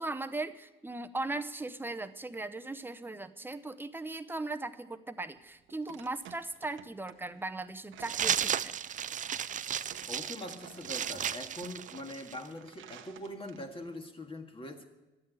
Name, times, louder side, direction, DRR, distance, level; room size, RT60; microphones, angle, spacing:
voice 1, 0.0-8.7, right 2 dB, 10° right, 9 dB, 0.7 m, -38 dB
sound 1, 5.4-13.9, right 10 dB, 80° right, 0.9 m, -54 dB
sound 2, 8.0-12.5, right 9 dB, 40° right, 0.4 m, -34 dB
voice 2, 10.1-14.8, left 1 dB, 25° left, 4 dB, 1.8 m, -43 dB
12.0 x 8.6 x 7.9 m, 1.1 s
cardioid pair, 90°, 20 cm